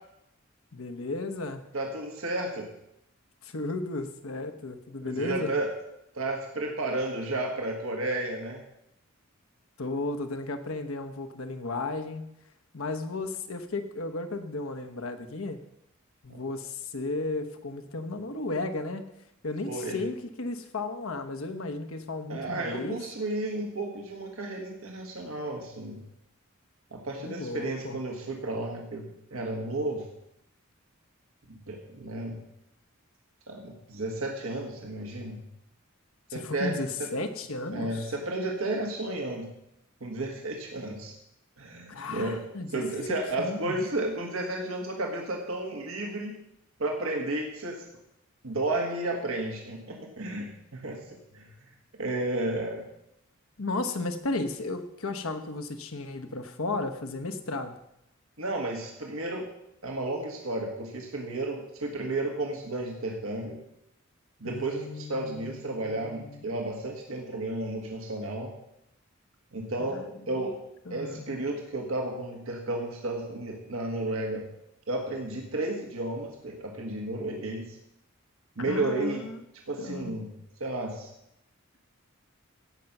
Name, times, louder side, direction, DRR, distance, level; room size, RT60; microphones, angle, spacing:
voice 1, 0.7-1.6 3.4-5.6 9.8-12.3 12.7-15.6 16.2-19.0 19.4-23.0 27.2-28.0 36.3-38.1 41.9-42.8 43.4-43.8 53.6-57.8 64.4-66.4 69.9-70.1 70.4-70.5 70.9-71.4 78.7-79.4 79.8-80.2, left 2 dB, 80° left, 7 dB, 1.1 m, -34 dB
voice 2, 1.7-2.7 5.0-5.7 6.1-8.6 16.3-16.4 19.7-20.0 22.3-26.1 26.9-30.1 31.5-32.4 33.5-35.4 36.3-37.1 37.7-39.5 40.0-41.1 41.6-46.3 46.8-47.9 48.4-51.5 52.0-52.9 58.4-59.5 59.8-63.6 64.4-68.5 69.5-70.6 70.9-74.5 74.9-77.8 78.6-79.3 79.7-80.3 80.6-81.1, right 2 dB, 80° right, 2 dB, 1.6 m, -32 dB
15.5 x 5.5 x 6.0 m, 0.82 s
head